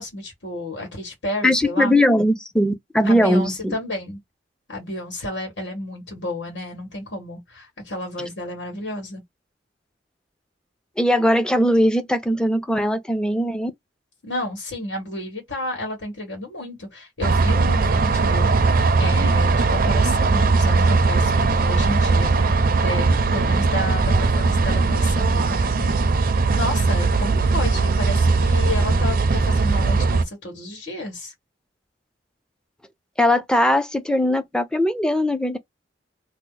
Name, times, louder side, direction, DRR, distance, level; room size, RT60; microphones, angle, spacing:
voice 1, 0.0-1.9 3.0-4.2 4.7-9.2 14.2-31.3, left 1 dB, 90° left, 1.5 m, -31 dB
voice 2, 1.4-3.7 11.0-13.7 33.2-35.6, left 1 dB, 5° left, 0.4 m, -20 dB
sound 1, 17.2-30.2, right 3 dB, 55° right, 0.5 m, -19 dB
2.8 x 2.1 x 3.8 m
head